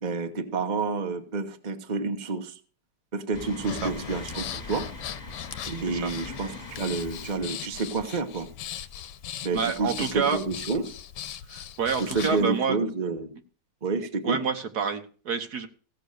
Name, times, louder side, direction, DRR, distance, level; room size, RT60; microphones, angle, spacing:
voice 1, 0.0-2.6 3.1-4.9 5.7-8.5 9.4-10.9 12.0-13.3 13.8-14.4, right 3 dB, 30° right, 6 dB, 1.1 m, -29 dB
sound 1, 3.3-8.9 9.4-9.5 10.8-10.9, left 3 dB, 25° left, 1.7 m, -42 dB
Breathing, 3.6-12.5, left 10 dB, 90° left, 1.5 m, -39 dB
voice 2, 9.5-10.4 11.5-12.8 14.2-15.7, right 6 dB, 65° right, 6 dB, 1.7 m, -28 dB
16.0 x 7.1 x 6.6 m, 0.40 s
omnidirectional pair, 1.8 m